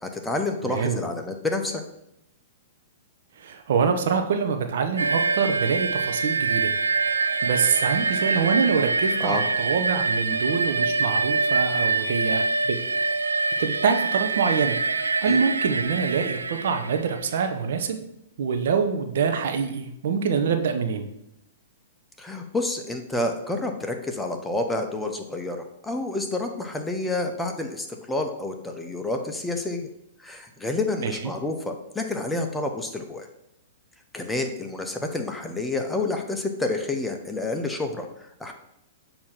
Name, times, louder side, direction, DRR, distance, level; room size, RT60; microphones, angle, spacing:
voice 1, 0.0-1.8 9.2-9.4 15.3-15.4 22.2-29.9 30.2-33.3 34.1-38.1 38.4-38.5, left 2 dB, 5° left, 4 dB, 0.8 m, -29 dB
voice 2, 0.6-1.0 3.4-6.7 7.4-12.8 13.6-14.8 15.2-18.0 18.4-21.1 31.0-31.1, right 6 dB, 65° right, 6 dB, 0.8 m, -25 dB
sound 1, 5.0-17.4, right 4 dB, 85° right, 0.4 m, -25 dB
6.5 x 2.9 x 5.7 m, 0.81 s
hypercardioid pair, 110°, 0 cm